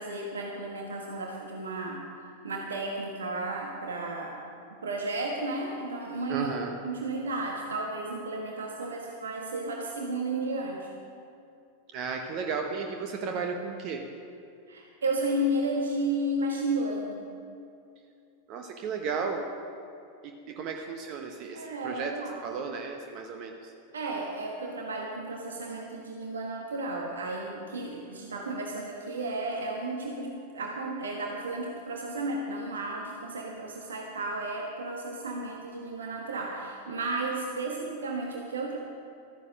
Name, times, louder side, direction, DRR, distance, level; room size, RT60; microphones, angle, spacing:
voice 1, 0.0-2.0 2.4-4.4 4.8-6.6 6.8-10.9 14.7-17.2 21.5-22.4 23.9-38.8, right 2 dB, 70° right, 0 dB, 1.4 m, -33 dB
voice 2, 6.3-6.7 11.9-14.0 18.5-19.5 20.5-22.2 22.4-23.7, right 5 dB, 40° right, 3 dB, 1.0 m, -34 dB
13.5 x 9.7 x 6.2 m, 2.5 s
figure-of-eight pair, 90°, 0 cm